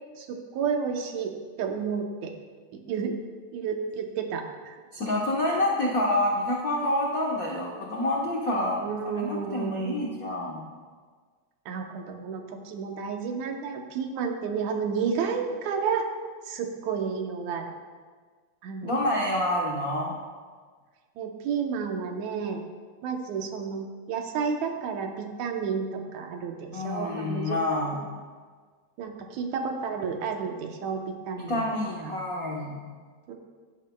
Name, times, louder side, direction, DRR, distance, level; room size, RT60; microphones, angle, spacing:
voice 1, 0.2-1.3 1.6-2.3 2.9-3.1 3.5-4.8 8.8-10.1 11.7-16.1 16.5-17.7 18.6-18.9 21.2-22.6 23.0-27.6 28.0-28.1 29.0-31.6 32.0-32.1 33.3-33.4, right 6 dB, 80° right, 3 dB, 2.2 m, -31 dB
voice 2, 4.9-10.6 18.8-20.2 26.7-28.0 31.5-32.8, left 1 dB, 90° left, -3 dB, 0.7 m, -28 dB
16.5 x 9.1 x 2.2 m, 1.5 s
omnidirectional pair, 3.3 m